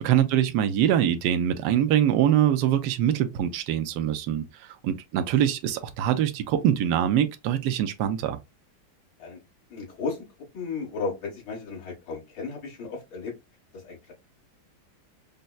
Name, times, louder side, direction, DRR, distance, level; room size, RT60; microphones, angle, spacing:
voice 1, 0.0-4.4 4.8-8.4, right 10 dB, 75° right, 1.0 m, -23 dB
voice 2, 9.7-10.2 10.5-13.3 13.7-14.1, left 4 dB, 75° left, 2.5 m, -34 dB
5.2 x 2.2 x 2.3 m
omnidirectional pair, 2.1 m